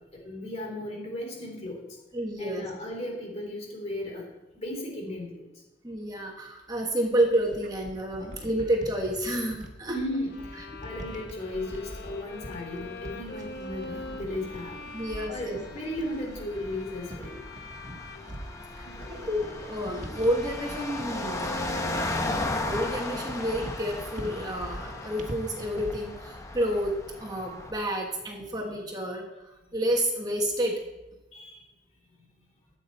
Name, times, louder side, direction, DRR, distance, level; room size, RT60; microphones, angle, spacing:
voice 1, 0.1-1.8 2.4-4.3 4.5-5.4 8.2-8.3 9.9-14.8 15.3-17.4 18.8-19.3 31.3-31.6, left 1 dB, 40° left, -1 dB, 3.4 m, -36 dB
voice 2, 2.1-2.7 5.8-10.0 10.7-10.8 14.9-15.6 18.7-21.6 22.5-30.8, right 1 dB, 20° right, 1 dB, 1.3 m, -30 dB
sound 1, 7.1-26.2, right 1 dB, 45° right, 1.4 m, -43 dB
Bowed string instrument, 10.3-25.6, left 2 dB, 60° left, 1.0 m, -44 dB
sound 2, 11.4-27.7, left 2 dB, 20° left, 1.1 m, -37 dB
14.0 x 8.6 x 4.3 m, 1.0 s
head